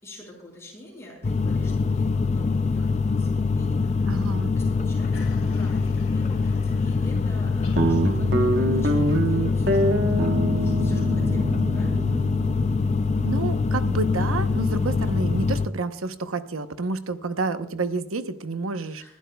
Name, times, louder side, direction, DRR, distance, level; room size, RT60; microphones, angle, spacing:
voice 1, 0.0-4.3 4.5-12.2 18.9-19.1, left 1 dB, 15° left, -2 dB, 5.4 m, -45 dB
sound 1, 1.2-15.7, left 4 dB, 35° left, 0.4 m, -24 dB
voice 2, 4.1-4.5 13.2-19.0, right 3 dB, 90° right, 10 dB, 0.9 m, -29 dB
sound 2, 5.1-10.1, left 2 dB, 75° left, 2.6 m, -47 dB
Guitar, 7.8-14.5, right 1 dB, 55° right, 1.2 m, -26 dB
29.5 x 12.0 x 2.3 m, 0.62 s
head